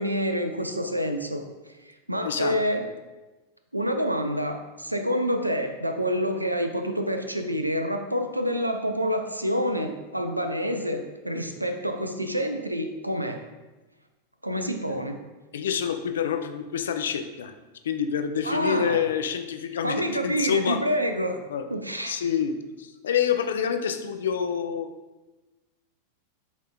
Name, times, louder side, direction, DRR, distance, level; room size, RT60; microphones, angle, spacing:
voice 1, 0.0-1.4 1.9-2.9 3.7-13.4 14.4-15.2 18.4-19.0 19.8-21.4 21.7-22.2, equal, 85° right, 6 dB, 0.4 m, -27 dB
voice 2, 2.2-2.6 14.9-15.0 15.5-17.5 17.8-20.8 21.5-21.7 22.1-24.9, left 8 dB, 65° left, 8 dB, 0.4 m, -27 dB
8.0 x 2.8 x 2.3 m, 1.2 s
figure-of-eight pair, 90°, 0 cm